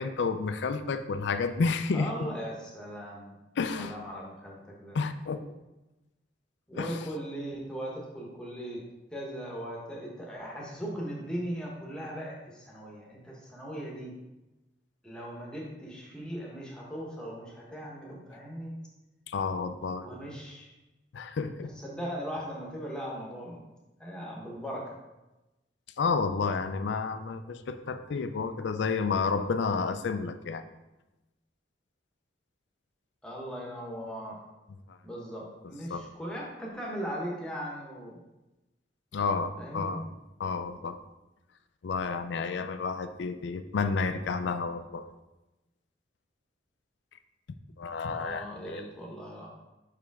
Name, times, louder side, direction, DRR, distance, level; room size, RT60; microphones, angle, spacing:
voice 1, 0.0-2.1 3.6-4.0 4.9-5.4 6.8-7.0 19.3-20.1 21.1-21.7 26.0-30.6 34.9-35.0 35.9-36.0 39.1-40.1 40.4-41.0 41.8-45.1 47.8-48.8, left 4 dB, 70° left, 9 dB, 0.4 m, -30 dB
voice 2, 1.9-3.4 3.7-5.0 6.7-8.8 9.1-14.1 15.0-18.8 20.0-20.7 21.8-23.6 24.0-25.0 33.2-34.4 35.0-38.2 39.6-40.0 48.1-49.5, equal, 5° left, -3 dB, 1.1 m, -38 dB
5.6 x 5.0 x 3.5 m, 1.0 s
head